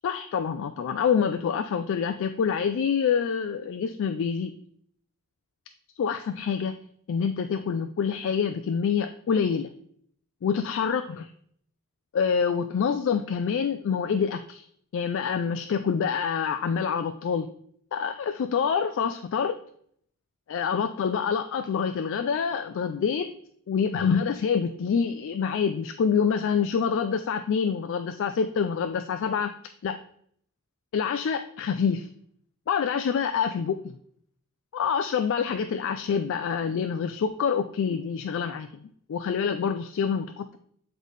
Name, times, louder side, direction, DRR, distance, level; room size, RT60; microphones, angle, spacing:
voice 1, 0.0-4.5 6.0-6.8 7.1-9.7 10.4-11.3 12.1-14.6 14.9-17.5 17.9-19.6 20.5-23.3 23.7-29.5 29.8-30.0 30.9-32.1 32.7-33.9 34.7-38.8 39.1-40.6, left 6 dB, 60° left, 8 dB, 0.3 m, -26 dB
8.1 x 3.9 x 3.2 m, 0.65 s
head